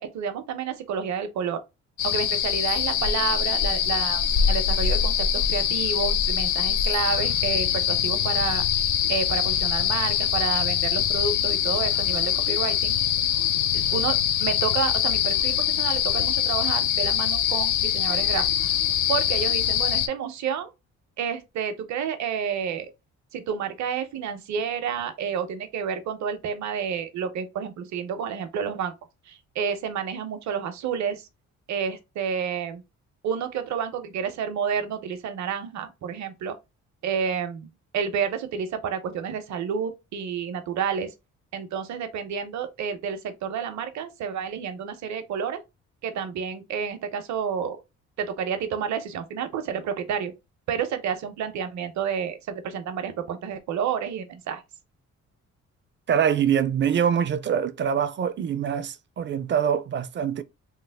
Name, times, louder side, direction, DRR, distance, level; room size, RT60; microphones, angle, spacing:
voice 1, 0.0-1.6 2.0-8.7 9.1-12.9 13.7-18.5 19.1-20.7 21.2-22.9 23.3-28.9 29.3-31.3 31.7-32.8 33.2-36.6 37.0-41.1 41.5-45.6 46.0-47.8 48.2-50.3 50.7-54.6, right 7 dB, 65° right, 0.7 m, -30 dB
sound 1, 2.0-20.1, left 9 dB, 85° left, 0.5 m, -24 dB
voice 2, 56.1-60.4, right 8 dB, 40° right, 0.4 m, -24 dB
3.2 x 2.0 x 3.4 m
cardioid pair, 90°, 30 cm